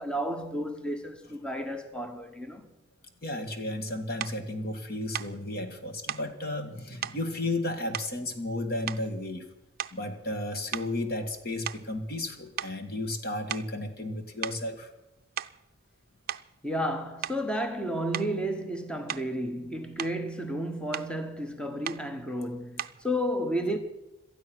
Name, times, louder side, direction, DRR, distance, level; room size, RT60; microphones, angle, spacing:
voice 1, 0.0-2.7 16.6-23.8, equal, 5° left, 1.1 m, -32 dB
voice 2, 3.2-9.5 9.9-14.9, left 2 dB, 55° left, 1.8 m, -33 dB
sound 1, 4.2-4.4 5.1-5.4 6.1-6.3 7.0-7.2 7.9-8.5 8.9-9.2 9.7-10.1 10.7-12.3 12.6-12.8 13.5-13.8 14.4-14.6 15.2-15.6 16.3-16.5 17.2-17.5 18.1-18.4 19.1-19.4 19.8-20.2 20.9-21.1 21.8-22.1 22.8-23.1, right 10 dB, 50° right, 0.5 m, -37 dB
18.5 x 12.5 x 6.2 m
head